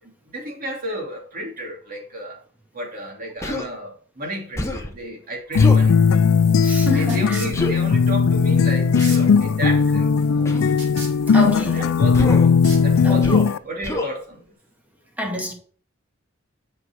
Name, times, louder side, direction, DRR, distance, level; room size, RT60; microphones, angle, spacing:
voice 1, 0.0-2.4 2.7-6.0 6.9-10.7 11.3-12.6 12.8-14.4, right 1 dB, 45° right, 2.8 m, -33 dB
Human voice, 3.4-3.7 4.6-4.9 5.6-5.9 7.5-7.7 8.9-9.3 10.5-10.7 12.1-12.5 13.2-13.5 13.8-14.1, left 1 dB, 15° left, 1.1 m, -26 dB
sound 1, 5.6-13.6, left 5 dB, 90° left, 0.4 m, -17 dB
sound 2, 6.0-13.4, right 3 dB, 60° right, 3.3 m, -40 dB
voice 2, 6.6-7.4 11.3-11.8 13.0-13.4 15.2-15.5, equal, 10° right, 2.0 m, -28 dB
8.9 x 5.2 x 4.7 m
head